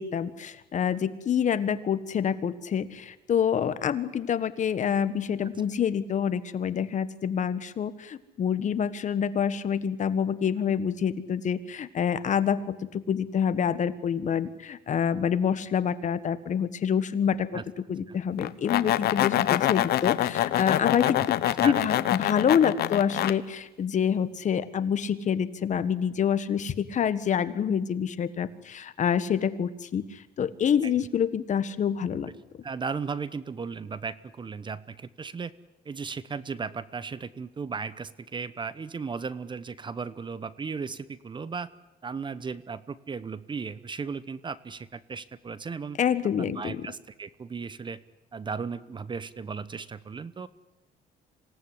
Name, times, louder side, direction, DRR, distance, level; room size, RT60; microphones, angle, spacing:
voice 1, 0.0-17.6 17.9-32.3 46.0-46.8, left 8 dB, 45° left, 13 dB, 1.5 m, -27 dB
sound 1, 18.4-23.3, left 13 dB, 70° left, 1.1 m, -25 dB
voice 2, 21.4-21.8 30.8-30.9 32.6-35.5 35.8-41.7 42.0-46.0 46.4-48.0 48.3-50.5, right 5 dB, 30° right, 16 dB, 1.0 m, -36 dB
26.5 x 18.0 x 9.9 m, 0.94 s
cardioid pair, 110°, 17 cm